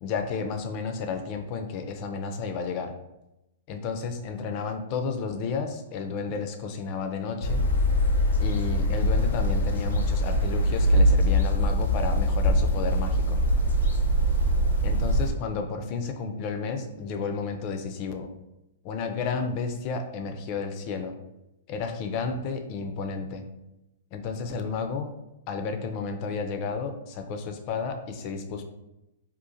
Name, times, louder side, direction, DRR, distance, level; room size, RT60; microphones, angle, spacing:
voice 1, 0.0-2.9 3.7-7.7 8.4-13.4 14.8-18.3 18.8-21.2 21.7-23.5 24.1-25.1 25.5-28.6, left 5 dB, 40° left, 6 dB, 0.4 m, -32 dB
sound 1, 7.4-15.3, equal, 85° left, 0.6 m, -23 dB
3.7 x 2.4 x 2.6 m, 0.93 s
hypercardioid pair, 125°, 0 cm